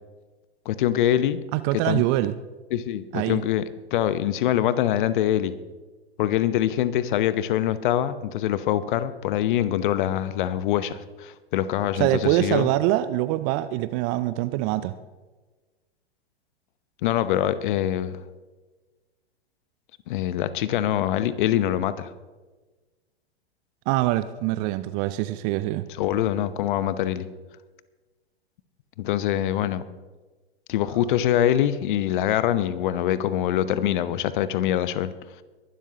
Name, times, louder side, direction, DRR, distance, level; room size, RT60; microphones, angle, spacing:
voice 1, 0.7-1.4 1.8-2.0 2.7-3.6 3.9-5.5 6.2-12.7 17.0-18.2 20.1-22.1 26.0-27.3 29.0-29.8 30.7-35.1, left 11 dB, 50° left, 15 dB, 0.8 m, -24 dB
voice 2, 1.5-2.3 3.1-3.4 12.0-14.9 23.9-25.9, right 15 dB, 25° right, 15 dB, 0.4 m, -24 dB
22.5 x 12.0 x 2.9 m, 1.3 s
figure-of-eight pair, 100°, 32 cm